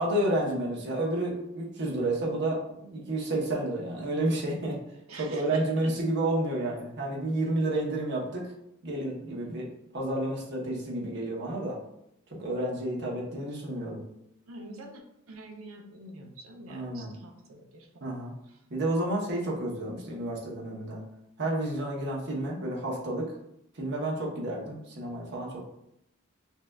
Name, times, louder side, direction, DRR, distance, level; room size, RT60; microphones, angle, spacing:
voice 1, 0.0-4.8 5.2-8.4 8.8-9.7 9.9-11.8 12.4-14.0 16.7-17.1 18.0-18.3 18.7-21.0 21.4-23.3 23.8-25.6, right 1 dB, 60° right, -2 dB, 0.9 m, -30 dB
voice 2, 5.1-6.0 14.5-18.2 18.5-18.6, right 2 dB, 85° right, 3 dB, 0.6 m, -46 dB
5.5 x 2.3 x 2.3 m, 0.79 s
head